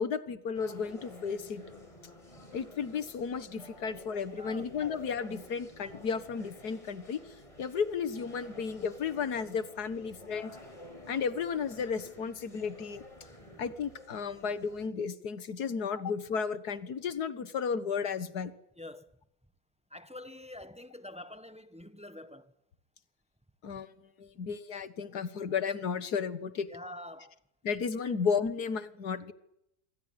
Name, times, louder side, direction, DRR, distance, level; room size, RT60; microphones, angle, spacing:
voice 1, 0.0-1.6 2.5-7.2 7.6-10.6 11.1-13.0 13.6-18.5 23.6-23.9 24.2-26.7 27.6-29.3, left 6 dB, 80° left, 2.0 m, -33 dB
sound 1, 0.5-14.9, left 1 dB, 20° left, 5.9 m, -51 dB
voice 2, 4.3-4.7 13.4-13.6 18.8-19.1 19.9-22.5 23.7-23.8 26.7-27.4 28.1-28.2, left 1 dB, 5° right, 1.3 m, -46 dB
27.0 x 24.5 x 8.8 m
omnidirectional pair, 1.6 m